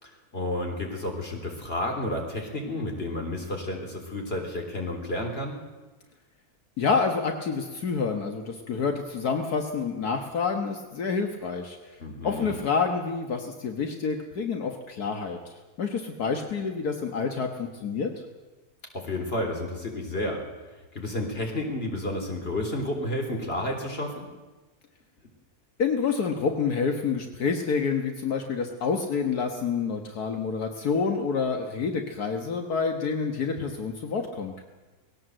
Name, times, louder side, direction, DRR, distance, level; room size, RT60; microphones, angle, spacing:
voice 1, 0.0-5.6 12.0-12.6 18.9-20.4 20.9-24.3, left 1 dB, 40° left, 2 dB, 3.8 m, -31 dB
voice 2, 6.8-18.1 25.8-34.6, left 5 dB, 75° left, 4 dB, 1.9 m, -28 dB
20.0 x 17.5 x 7.8 m, 1.2 s
omnidirectional pair, 1.6 m